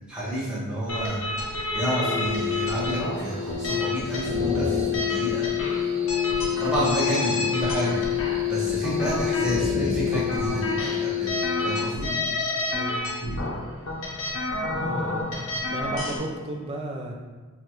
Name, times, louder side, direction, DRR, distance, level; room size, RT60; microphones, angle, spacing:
voice 1, 0.1-5.4 6.5-8.0 8.5-12.1, equal, 5° right, -9 dB, 1.0 m, -29 dB
sound 1, 0.9-16.2, left 1 dB, 60° left, 0.7 m, -30 dB
sound 2, 2.0-11.8, left 10 dB, 70° right, 0.8 m, -28 dB
voice 2, 12.7-13.1 14.7-17.1, right 1 dB, 25° right, 2 dB, 0.4 m, -34 dB
4.7 x 2.4 x 3.0 m, 1.4 s
head